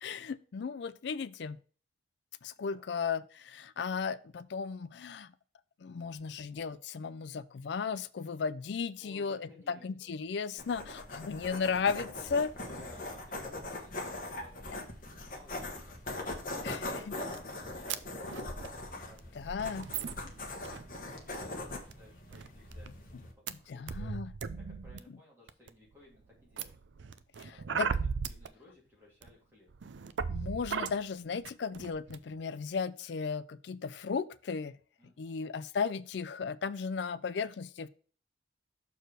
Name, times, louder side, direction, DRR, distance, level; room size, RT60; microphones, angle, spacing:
voice 1, 0.0-1.6 2.4-5.3 5.8-12.5 16.6-16.8 19.4-19.9 23.7-24.3 27.4-27.9 30.3-34.8 35.2-37.9, left 5 dB, 70° left, 0.4 m, -35 dB
voice 2, 2.6-2.9 9.0-10.1 12.5-16.0 16.5-18.0 18.7-24.1 24.5-26.8 27.5-27.8 28.3-29.7 35.0-35.5, left 2 dB, 10° right, 2.6 m, -59 dB
sound 1, 10.6-23.3, left 2 dB, 45° left, 1.3 m, -41 dB
sound 2, 17.3-17.4 17.9-18.0 18.2-18.7 19.2-19.3 19.8-21.0 21.3-21.5 21.9-22.0 22.3-22.9 23.5-23.6 23.9-25.0 25.5-25.9 26.6-28.5 29.2-29.3 29.7-30.9 31.4-31.5 31.7-32.2, right 6 dB, 80° right, 0.5 m, -36 dB
6.5 x 4.7 x 4.6 m
head